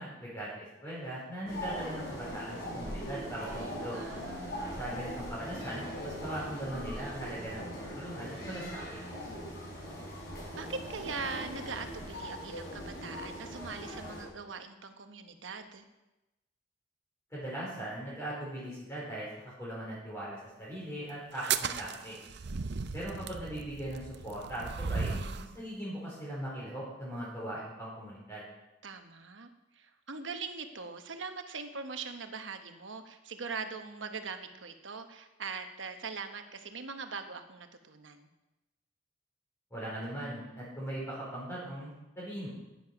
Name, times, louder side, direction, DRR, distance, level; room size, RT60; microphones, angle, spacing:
voice 1, 0.0-4.0 4.8-7.6 7.9-9.0 17.3-22.2 22.9-28.4 39.7-42.5, right 1 dB, 15° left, -8 dB, 4.4 m, -40 dB
sound 1, 1.5-14.2, equal, 60° left, 4.5 m, -40 dB
voice 2, 3.6-4.5 10.5-15.9 28.8-38.3, right 4 dB, 80° right, 7 dB, 1.1 m, -41 dB
sound 2, 21.3-25.5, right 6 dB, 60° right, 0.6 m, -36 dB
11.0 x 10.0 x 5.9 m, 0.99 s
head